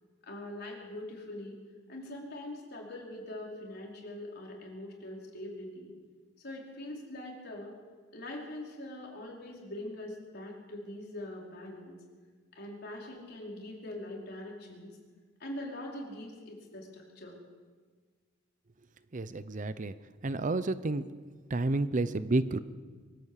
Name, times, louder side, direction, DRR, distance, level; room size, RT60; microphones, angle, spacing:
voice 1, 0.2-1.6 1.9-5.9 6.4-7.7 8.1-12.0 12.5-14.9 15.4-17.4, left 1 dB, 55° left, -1 dB, 4.9 m, -43 dB
voice 2, 19.1-19.9 20.2-21.0 21.5-22.6, right 2 dB, 40° right, 14 dB, 0.7 m, -30 dB
23.5 x 13.5 x 8.3 m, 1.5 s
head